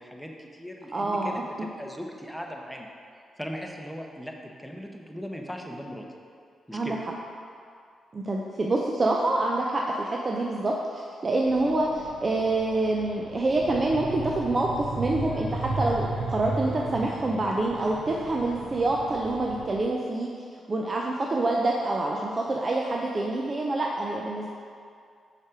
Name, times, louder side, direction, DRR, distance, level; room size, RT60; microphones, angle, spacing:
voice 1, 0.0-2.9 3.4-6.0 6.7-7.0, equal, ahead, 1 dB, 0.9 m, -38 dB
voice 2, 0.9-1.4 6.7-7.0 8.1-20.3 20.7-24.5, right 2 dB, 40° right, -1 dB, 0.6 m, -26 dB
sound 1, 11.4-19.8, right 2 dB, 90° right, 0.7 m, -35 dB
5.4 x 5.2 x 4.9 m, 2.3 s
supercardioid pair, 55°, 0 cm